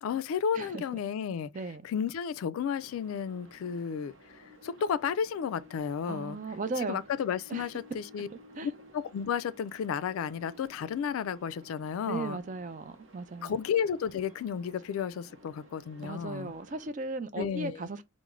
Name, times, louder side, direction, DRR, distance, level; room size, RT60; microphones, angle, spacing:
voice 1, 0.0-1.5 1.8-6.4 6.8-8.3 8.6-12.4 13.4-16.5 17.4-17.8, left 7 dB, 90° left, 0.3 m, -33 dB
sound 1, 2.8-16.9, equal, 70° right, 0.7 m, -55 dB
voice 2, 6.1-7.0 7.5-7.6 8.6-8.7 12.1-13.5 16.0-18.0, right 3 dB, 40° right, 0.4 m, -36 dB
3.6 x 2.0 x 3.1 m
head